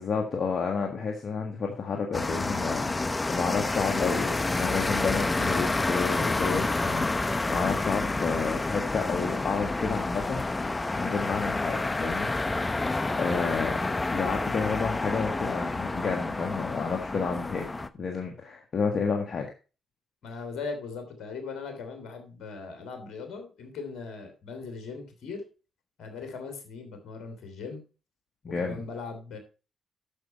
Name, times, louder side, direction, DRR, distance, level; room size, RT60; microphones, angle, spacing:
voice 1, 0.0-12.3 13.1-17.7 18.0-19.5 28.4-28.8, left 5 dB, 55° left, 2 dB, 1.7 m, -30 dB
sound 1, 2.1-17.9, left 2 dB, 25° left, 0.9 m, -29 dB
voice 2, 20.2-25.4 26.0-27.8 28.5-29.4, left 4 dB, 70° left, 6 dB, 3.1 m, -39 dB
11.0 x 7.0 x 4.3 m, 0.34 s
hypercardioid pair, 50°, 0 cm